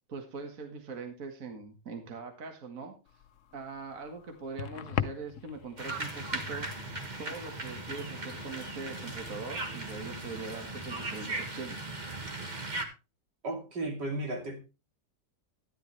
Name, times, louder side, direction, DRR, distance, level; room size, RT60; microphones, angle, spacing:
voice 1, 0.1-2.9 3.5-6.7 7.2-11.9, right 4 dB, 50° right, 5 dB, 2.0 m, -42 dB
sound 1, 3.1-11.2, left 10 dB, 60° left, 0.9 m, -42 dB
sound 2, 5.8-12.8, right 2 dB, 25° right, 1.6 m, -38 dB
voice 2, 13.4-14.6, right 2 dB, 75° right, 3 dB, 3.1 m, -34 dB
13.0 x 10.5 x 3.3 m, 0.29 s
omnidirectional pair, 1.9 m